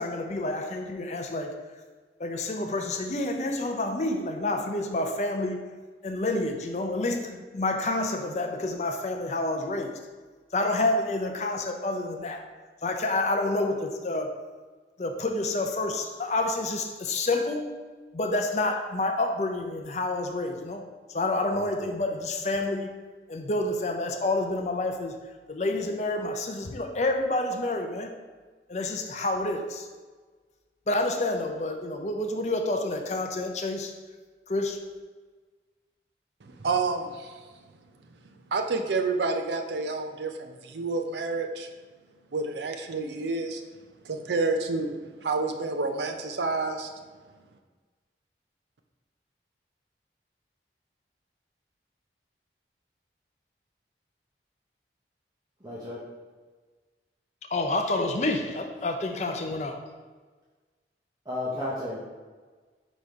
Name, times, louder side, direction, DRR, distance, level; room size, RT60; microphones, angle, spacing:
voice 1, 0.0-1.6 2.2-5.6 6.0-9.9 10.5-12.4 12.8-14.3 15.0-17.8 18.1-20.9 21.1-22.9 23.3-25.1 25.5-28.1 28.7-29.9 30.9-33.9 34.5-34.8 57.5-59.8, left 2 dB, 40° left, 4 dB, 0.5 m, -28 dB
voice 2, 21.5-21.9 55.6-56.0 61.2-62.0, left 1 dB, 20° right, -7 dB, 0.9 m, -33 dB
voice 3, 36.4-37.4 38.5-41.7 42.3-43.6 44.0-44.9 45.2-46.9, right 3 dB, 80° right, 5 dB, 0.5 m, -29 dB
5.0 x 4.1 x 4.6 m, 1.4 s
head